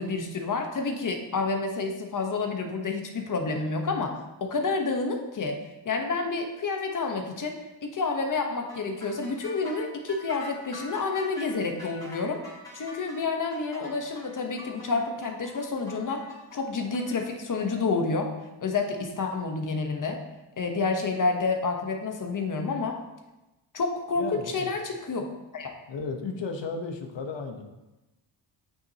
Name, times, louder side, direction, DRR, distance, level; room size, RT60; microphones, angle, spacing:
voice 1, 0.0-5.6 5.8-7.5 7.8-12.4 12.7-16.2 16.5-18.3 18.6-20.2 20.6-23.0 23.7-25.2 25.5-25.7, left 4 dB, 40° left, 4 dB, 1.1 m, -29 dB
sound 1, 8.7-17.2, left 1 dB, 10° left, 2.6 m, -45 dB
voice 2, 24.1-24.7 25.9-27.6, left 4 dB, 65° left, 4 dB, 1.2 m, -34 dB
8.6 x 6.9 x 2.9 m, 1.0 s
cardioid pair, 110°, 46 cm